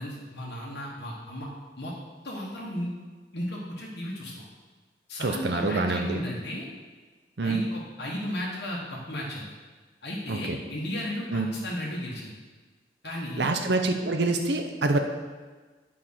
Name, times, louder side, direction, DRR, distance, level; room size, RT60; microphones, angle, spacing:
voice 1, 0.0-1.5 1.8-1.9 2.2-2.9 3.3-4.4 5.1-6.7 7.4-9.5 10.0-12.3 13.0-13.5, left 1 dB, 70° left, -4 dB, 1.4 m, -34 dB
voice 2, 5.2-6.2 7.4-7.6 10.3-10.6 11.3-11.5 13.4-15.0, right 3 dB, 70° right, 5 dB, 0.7 m, -26 dB
8.8 x 5.1 x 5.7 m, 1.4 s
head